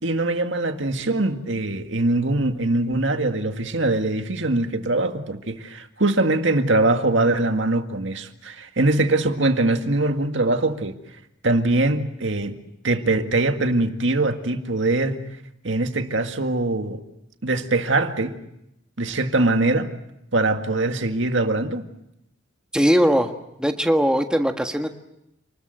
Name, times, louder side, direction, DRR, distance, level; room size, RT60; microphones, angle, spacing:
voice 1, 0.0-11.0 11.4-12.6 12.8-15.2 15.6-17.0 17.4-18.4 19.0-19.9 20.3-21.8, right 2 dB, 65° right, 2.0 m, -22 dB
voice 2, 22.7-23.3 23.6-24.9, equal, 5° right, 1.5 m, -19 dB
29.0 x 20.5 x 7.9 m
head